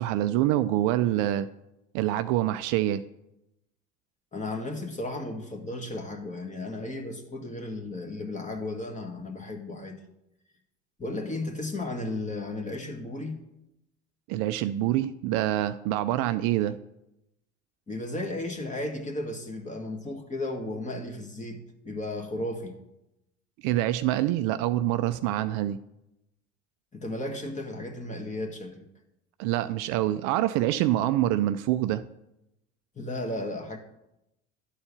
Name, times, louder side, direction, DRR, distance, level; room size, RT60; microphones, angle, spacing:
voice 1, 0.0-1.5 1.9-3.0 14.3-16.8 23.6-25.8 29.4-32.1, right 14 dB, 55° right, 0.5 m, -26 dB
voice 2, 4.3-10.0 11.0-13.4 17.9-22.7 26.9-28.9 33.0-33.8, left 2 dB, 20° left, 1.8 m, -34 dB
11.5 x 4.4 x 6.9 m
hypercardioid pair, 70°, 36 cm